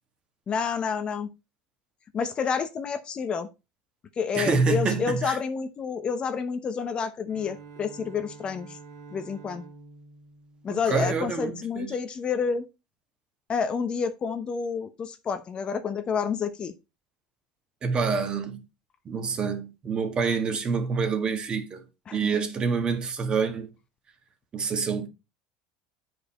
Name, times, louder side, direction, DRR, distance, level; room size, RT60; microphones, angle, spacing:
voice 1, 0.5-1.3 2.1-3.5 4.2-8.8 9.1-9.6 10.6-12.7 13.5-16.7 22.1-22.3, left 6 dB, 30° left, 0.9 m, -29 dB
voice 2, 4.3-5.4 10.7-11.9 17.8-18.6 19.1-21.8 22.1-23.7 24.5-25.1, right 5 dB, 30° right, 1.6 m, -27 dB
Bowed string instrument, 7.2-11.6, right 4 dB, 90° right, 2.6 m, -48 dB
9.3 x 5.2 x 4.3 m
supercardioid pair, 120°, 3 cm